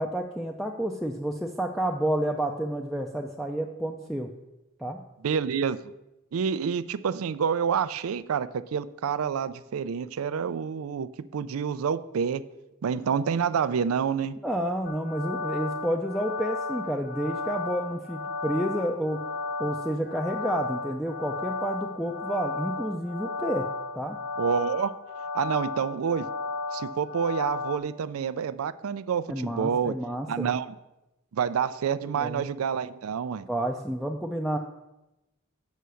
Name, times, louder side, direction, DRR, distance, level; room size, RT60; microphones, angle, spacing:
voice 1, 0.0-4.3 4.8-5.0 14.4-23.7 23.9-24.2 29.3-30.5 32.2-32.4 33.5-34.6, right 1 dB, ahead, 1 dB, 0.4 m, -30 dB
voice 2, 5.2-5.8 6.3-12.4 12.8-14.4 24.4-24.9 25.3-26.3 26.7-29.9 30.3-30.8 31.3-33.5, right 7 dB, 80° right, 14 dB, 0.4 m, -28 dB
sound 1, 14.8-27.8, left 3 dB, 50° left, 0.8 m, -34 dB
8.2 x 5.6 x 6.3 m, 0.95 s
head